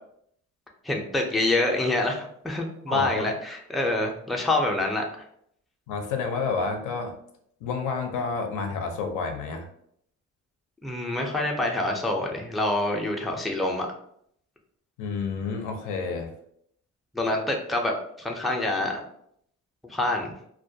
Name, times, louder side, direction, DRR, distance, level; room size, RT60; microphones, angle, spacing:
voice 1, 0.8-5.2 10.8-13.9 17.1-19.0 19.9-20.3, left 2 dB, ahead, 0 dB, 0.3 m, -26 dB
voice 2, 2.9-3.3 5.9-7.1 7.6-9.7 15.0-16.3, left 4 dB, 85° left, 5 dB, 0.5 m, -29 dB
2.2 x 2.2 x 2.6 m, 0.70 s
cardioid pair, 90°, 30 cm